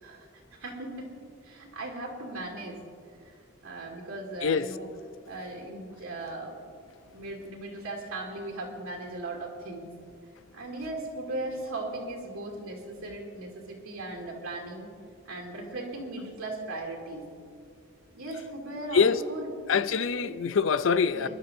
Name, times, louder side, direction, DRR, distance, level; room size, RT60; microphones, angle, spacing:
voice 1, 0.0-1.1 1.4-2.8 3.2-3.4 3.6-4.9 5.3-6.8 7.1-9.9 10.5-14.9 15.2-17.3 18.1-19.5 20.2-20.4 21.1-21.3, right 2 dB, 80° right, 2.9 m, -38 dB
voice 2, 19.7-21.3, left 5 dB, 65° left, 0.5 m, -24 dB
25.5 x 12.0 x 2.7 m
head